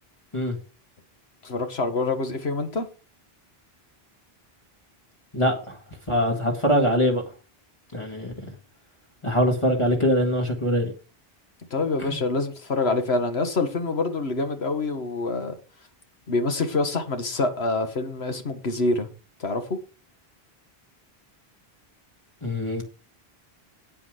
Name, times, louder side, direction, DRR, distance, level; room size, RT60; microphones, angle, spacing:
voice 1, 1.4-2.9 11.7-15.6 16.3-19.1 19.4-19.8, left 3 dB, 85° left, 1.8 m, -26 dB
voice 2, 5.3-5.8 6.1-7.2 7.9-8.5 9.2-10.9 12.1-12.2 22.4-22.8, equal, 30° left, 2.0 m, -23 dB
9.8 x 8.8 x 4.9 m
omnidirectional pair, 1.0 m